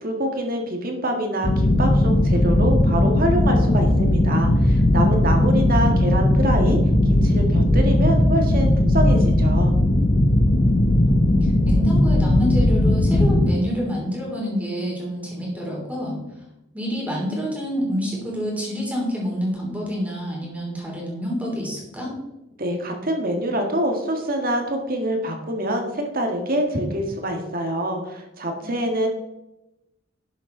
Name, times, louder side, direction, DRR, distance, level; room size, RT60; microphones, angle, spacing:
voice 1, 0.0-6.8 7.1-9.7 22.6-29.1, right 1 dB, 45° right, 3 dB, 1.9 m, -25 dB
sound 1, 1.4-13.5, left 1 dB, 35° left, 0.7 m, -18 dB
voice 2, 11.6-16.2 16.7-22.1 28.6-28.7, equal, 5° right, -3 dB, 3.2 m, -27 dB
11.5 x 7.4 x 3.9 m, 0.93 s
head